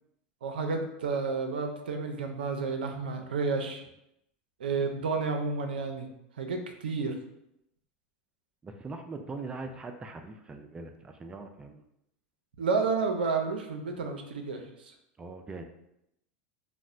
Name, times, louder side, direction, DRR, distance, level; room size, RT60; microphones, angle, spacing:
voice 1, 0.4-3.8 4.6-6.1 6.4-7.1 12.6-14.9, right 4 dB, 90° right, 4 dB, 0.4 m, -31 dB
voice 2, 8.6-11.8 15.2-15.6, right 3 dB, 20° right, 5 dB, 0.3 m, -41 dB
4.1 x 2.0 x 2.4 m, 0.81 s
hypercardioid pair, 100°, 5 cm